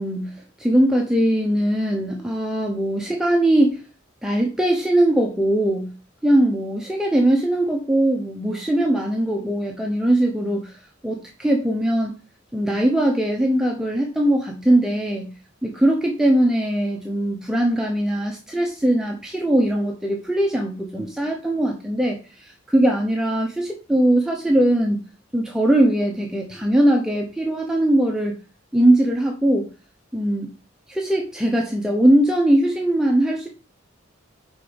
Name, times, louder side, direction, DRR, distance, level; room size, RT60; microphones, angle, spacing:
voice 1, 0.0-3.8 4.2-5.9 6.2-12.1 12.5-15.3 15.6-25.0 25.3-28.4 28.7-29.7 30.1-30.5 30.9-33.5, right 1 dB, 5° right, 0 dB, 0.7 m, -20 dB
5.4 x 3.9 x 5.1 m, 0.33 s
head